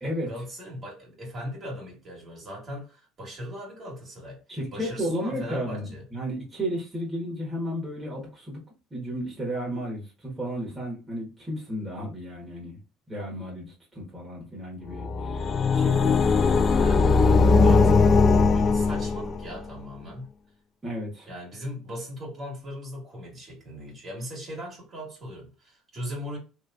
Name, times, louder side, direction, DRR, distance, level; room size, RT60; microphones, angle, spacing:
voice 1, 0.3-4.4 4.7-6.0 16.5-18.0 18.5-20.3 21.3-26.4, equal, 40° right, 1.8 m, -39 dB
voice 2, 4.5-8.6 8.9-12.8 13.1-16.6 20.8-21.3, equal, 15° right, 1.4 m, -33 dB
sound 1, 14.9-19.6, left 4 dB, 35° left, 0.3 m, -20 dB
3.1 x 3.0 x 2.5 m
supercardioid pair, 100°, 0 cm